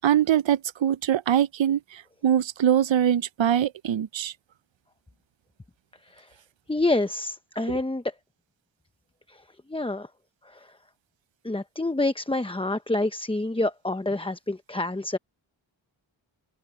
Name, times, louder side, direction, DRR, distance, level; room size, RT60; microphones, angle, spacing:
voice 1, 0.0-4.3 7.7-7.8, right 10 dB, 70° right, 0.6 m, -23 dB
voice 2, 6.7-8.0 9.3-9.4 9.7-10.1 10.4-10.7 11.4-15.2, left 2 dB, 10° left, 0.7 m, -27 dB
open air
wide cardioid pair, 65°, 48 cm